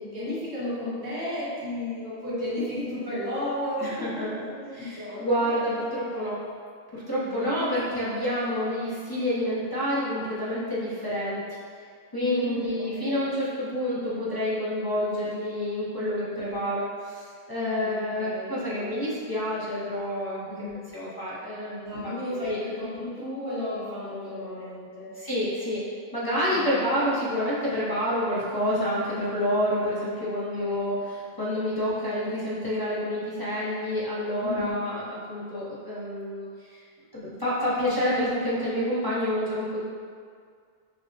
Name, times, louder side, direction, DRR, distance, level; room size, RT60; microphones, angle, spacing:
voice 1, 0.0-5.3 7.1-7.5 12.2-13.3 16.4-16.6 17.5-19.0 20.5-20.9 21.8-25.1 26.5-26.8 30.5-31.0 31.7-31.9 34.4-34.9, left 1 dB, 75° right, -9 dB, 1.5 m, -34 dB
voice 2, 3.8-4.5 4.7-6.4 6.9-11.4 12.1-20.5 20.9-22.1 22.5-22.6 25.2-25.8 26.1-36.8 37.1-39.8, equal, 25° left, -9 dB, 0.5 m, -28 dB
6.0 x 2.0 x 2.7 m, 2.1 s
omnidirectional pair, 1.1 m